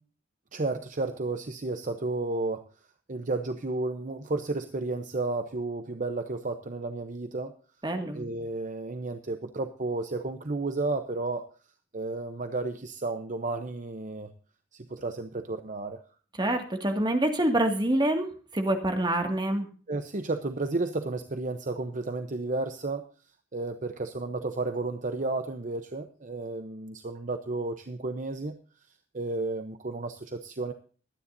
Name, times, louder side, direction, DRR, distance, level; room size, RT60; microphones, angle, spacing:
voice 1, 0.5-2.7 3.1-7.5 8.1-11.5 11.9-14.3 14.7-16.0 19.9-23.0 23.5-28.6 29.1-30.7, right 2 dB, 40° right, 8 dB, 0.8 m, -32 dB
voice 2, 7.8-8.2 16.4-19.7, right 1 dB, 25° right, 4 dB, 2.1 m, -26 dB
22.0 x 10.0 x 2.7 m, 0.39 s
head